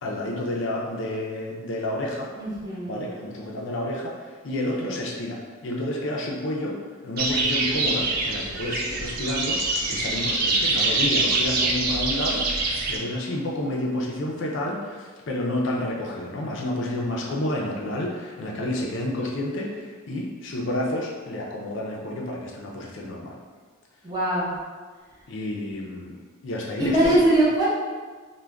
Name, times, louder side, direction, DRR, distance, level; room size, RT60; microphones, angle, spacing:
voice 1, 0.0-2.3 2.9-6.8 7.0-23.4 25.3-26.2 26.4-27.2, left 1 dB, 60° left, -2 dB, 0.4 m, -30 dB
voice 2, 2.4-3.0 24.0-24.6 26.8-27.8, right 1 dB, 20° right, -9 dB, 0.7 m, -21 dB
sound 1, 7.2-13.0, right 2 dB, 45° right, 0.3 m, -25 dB
2.4 x 2.1 x 3.3 m, 1.5 s
head